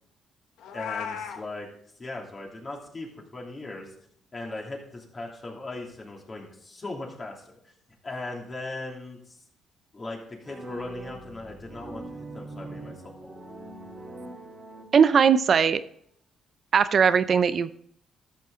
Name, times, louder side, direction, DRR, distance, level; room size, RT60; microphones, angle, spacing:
Meow, 0.6-1.4, left 8 dB, 85° left, 1.0 m, -35 dB
voice 1, 0.7-1.7 2.0-3.9 4.3-7.7 8.0-9.4 9.9-13.3, left 2 dB, 30° left, -1 dB, 2.9 m, -38 dB
sound 1, 10.4-15.4, right 2 dB, 35° right, 1.8 m, -42 dB
voice 2, 14.9-15.8 16.7-17.7, right 6 dB, 50° right, 13 dB, 0.4 m, -19 dB
13.5 x 6.6 x 3.8 m, 0.67 s
cardioid pair, 90°, 0 cm